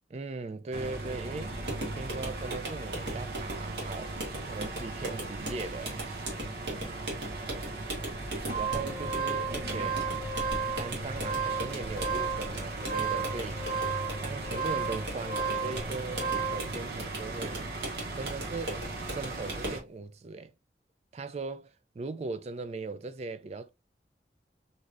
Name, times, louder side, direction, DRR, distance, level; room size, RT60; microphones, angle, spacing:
voice 1, 0.1-1.6 1.9-6.0 8.5-10.1 10.8-13.6 14.2-17.7 18.1-18.8 19.1-20.5 21.1-23.7, right 3 dB, 35° right, 0.3 m, -39 dB
sound 1, 0.7-19.8, right 2 dB, 60° right, 0.7 m, -38 dB
sound 2, 1.7-19.9, right 1 dB, 80° right, 1.3 m, -40 dB
sound 3, 8.2-16.7, right 5 dB, 30° left, 0.7 m, -33 dB
3.2 x 2.7 x 2.4 m
head